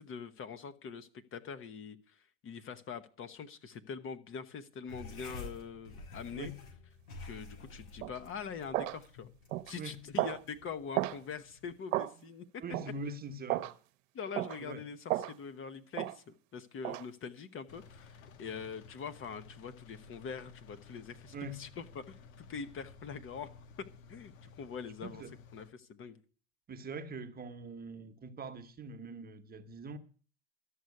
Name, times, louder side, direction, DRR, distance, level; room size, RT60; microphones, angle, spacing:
voice 1, 0.0-6.5 7.2-9.3 9.6-12.6 14.1-23.6 24.1-25.2 25.5-26.2, left 6 dB, 30° left, 1.1 m, -44 dB
sound 1, 4.9-11.8, left 3 dB, 90° left, 5.7 m, -50 dB
sound 2, 8.0-8.2 8.7-9.0 9.5-9.7 10.2-10.4 10.9-11.2 11.9-12.1 12.7-12.9 13.5-13.7 14.3-14.6 15.1-15.3 15.9-16.2 16.8-17.0, right 16 dB, 60° right, 1.0 m, -33 dB
voice 2, 12.6-13.7 14.6-14.8 21.3-21.6 25.0-25.3 26.7-30.0, right 3 dB, 20° right, 1.2 m, -43 dB
Engine, 17.7-25.7, left 5 dB, 70° left, 1.8 m, -55 dB
13.0 x 6.4 x 9.5 m
hypercardioid pair, 105°, 43 cm